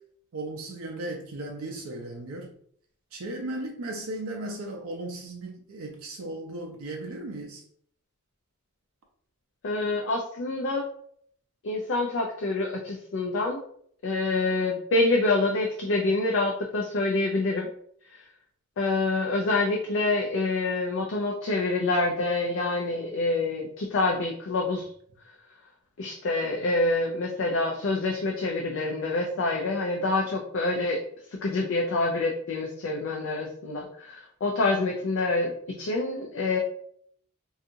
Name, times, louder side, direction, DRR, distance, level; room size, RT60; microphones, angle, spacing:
voice 1, 0.3-2.5 3.1-7.6, right 2 dB, 75° right, 0.5 m, -36 dB
voice 2, 9.6-10.9 11.6-13.6 14.0-17.7 18.8-24.9 26.0-31.0 31.4-35.5 35.8-36.6, left 2 dB, 60° left, 0.4 m, -26 dB
2.7 x 2.3 x 2.6 m
head